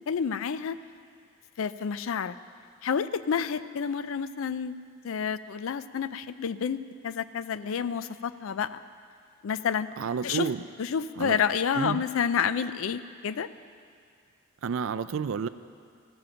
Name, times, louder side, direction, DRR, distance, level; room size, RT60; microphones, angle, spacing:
voice 1, 0.1-0.8 1.6-2.3 2.8-4.7 5.0-6.8 7.0-8.8 9.4-9.9 10.2-10.5 10.8-13.5, left 7 dB, 70° left, 14 dB, 0.4 m, -29 dB
voice 2, 10.0-10.6 11.2-11.4 11.7-12.0 14.6-15.5, right 6 dB, 65° right, 13 dB, 0.4 m, -30 dB
15.5 x 7.6 x 6.3 m, 2.2 s
head